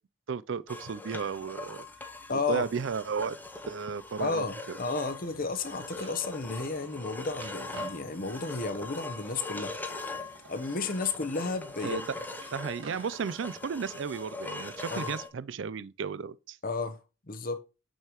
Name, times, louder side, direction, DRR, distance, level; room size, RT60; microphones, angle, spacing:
voice 1, 0.3-1.9 2.3-3.4 3.7-4.8 11.8-12.2 12.5-16.6, right 6 dB, 60° right, 0.4 m, -34 dB
sound 1, 0.7-15.3, left 2 dB, 10° left, 0.7 m, -41 dB
voice 2, 2.3-2.7 4.2-9.7 10.5-12.0 14.9-15.1 16.6-17.6, left 3 dB, 40° left, 0.8 m, -33 dB
sound 2, 5.2-15.0, right 3 dB, 80° right, 2.5 m, -53 dB
6.6 x 6.4 x 2.9 m
head